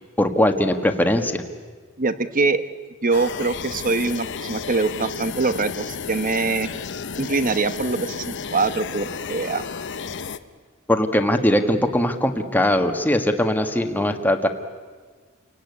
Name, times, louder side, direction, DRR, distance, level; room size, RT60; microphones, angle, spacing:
voice 1, 0.2-1.4 10.9-14.5, left 1 dB, 10° left, 5 dB, 1.6 m, -20 dB
voice 2, 2.0-2.6 3.0-6.7 7.2-9.6, right 3 dB, 40° right, 12 dB, 1.1 m, -23 dB
sound 1, 3.1-10.4, left 6 dB, 60° left, 0.9 m, -32 dB
29.0 x 18.0 x 9.7 m, 1.5 s
head